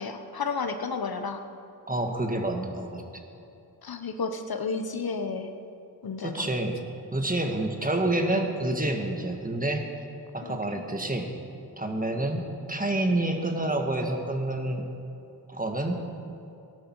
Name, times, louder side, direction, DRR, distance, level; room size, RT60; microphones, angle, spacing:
voice 1, 0.0-1.4 3.8-5.5 6.0-6.5 10.4-10.8, left 4 dB, 60° left, 7 dB, 1.0 m, -32 dB
voice 2, 1.9-3.0 6.2-6.8 7.1-9.8 10.3-11.3 11.8-14.8 15.5-16.0, right 1 dB, 20° right, 3 dB, 1.7 m, -28 dB
17.5 x 11.5 x 4.7 m, 2.8 s
cardioid pair, 65°, 41 cm